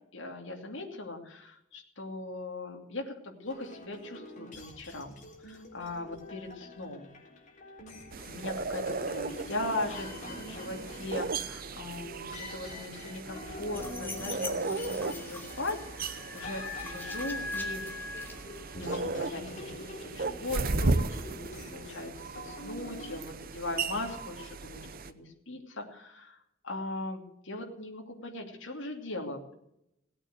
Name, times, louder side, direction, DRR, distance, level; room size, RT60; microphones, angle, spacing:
voice 1, 0.1-7.1 8.2-17.9 18.7-19.7 20.0-29.5, left 2 dB, 65° left, 1 dB, 2.7 m, -39 dB
sound 1, 3.4-23.2, left 1 dB, 40° left, 4.0 m, -45 dB
sound 2, 8.1-25.1, right 3 dB, 45° right, 0.8 m, -36 dB
sound 3, 13.7-18.9, left 2 dB, 10° left, 2.9 m, -41 dB
18.0 x 8.8 x 8.0 m, 0.80 s
head